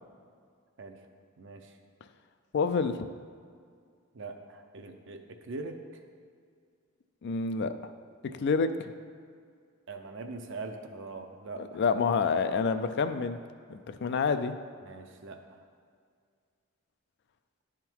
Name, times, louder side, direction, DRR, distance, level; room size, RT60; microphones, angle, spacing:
voice 1, 1.4-1.8 4.1-6.1 9.9-11.8 14.8-15.6, right 3 dB, 60° right, 5 dB, 0.6 m, -42 dB
voice 2, 2.5-3.0 7.2-7.9 8.4-8.7 11.6-13.4 13.7-14.5, left 5 dB, 55° left, 10 dB, 0.4 m, -28 dB
11.0 x 3.7 x 4.5 m, 2.1 s
head